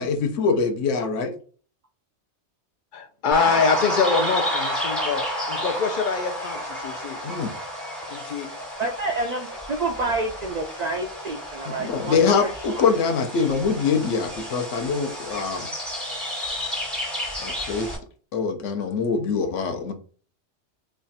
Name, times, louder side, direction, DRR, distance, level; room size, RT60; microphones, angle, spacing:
voice 1, 0.0-1.3 7.2-7.5 11.6-15.7 17.4-17.9 18.3-19.9, left 5 dB, 90° left, 6 dB, 1.0 m, -24 dB
voice 2, 2.9-7.2 8.1-8.5, left 5 dB, 55° left, 7 dB, 0.6 m, -25 dB
sound 1, 3.3-18.0, equal, ahead, 1.2 m, -31 dB
voice 3, 8.8-12.5, right 2 dB, 70° right, 4 dB, 0.4 m, -28 dB
3.3 x 2.4 x 4.0 m, 0.41 s
omnidirectional pair, 1.2 m